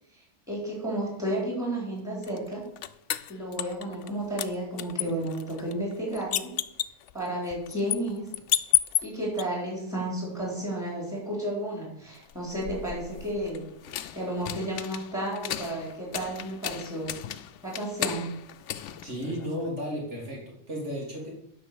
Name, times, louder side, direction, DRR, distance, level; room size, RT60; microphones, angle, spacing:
voice 1, 0.5-2.7 3.3-6.5 7.1-8.3 9.0-13.7 14.1-17.2 17.6-18.3, right 1 dB, 5° right, -3 dB, 4.4 m, -32 dB
sound 1, 2.2-4.1 4.4-9.4 12.2-19.7, left 12 dB, 85° left, 0.9 m, -33 dB
voice 2, 19.0-21.3, equal, 80° right, -3 dB, 3.4 m, -34 dB
10.0 x 5.9 x 7.2 m, 0.74 s
omnidirectional pair, 1.2 m